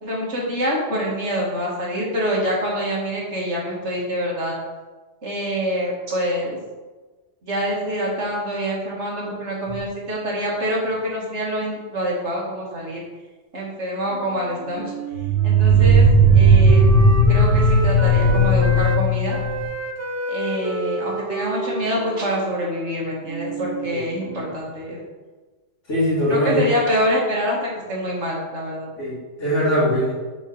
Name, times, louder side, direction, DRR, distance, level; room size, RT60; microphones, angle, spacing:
voice 1, 0.0-4.6 5.2-6.6 7.4-13.0 13.5-14.9 15.4-16.9 17.3-19.4 20.3-25.0 26.3-28.9, equal, 65° right, -4 dB, 2.0 m, -26 dB
sound 1, 9.7-9.8 15.1-19.7, right 2 dB, 85° right, 1.8 m, -15 dB
Wind instrument woodwind instrument, 14.1-19.0 19.3-24.6, right 2 dB, 25° right, 0.3 m, -31 dB
voice 2, 25.9-26.6 29.0-30.1, equal, 75° left, -7 dB, 2.9 m, -21 dB
6.1 x 4.4 x 5.3 m, 1.3 s
omnidirectional pair, 1.3 m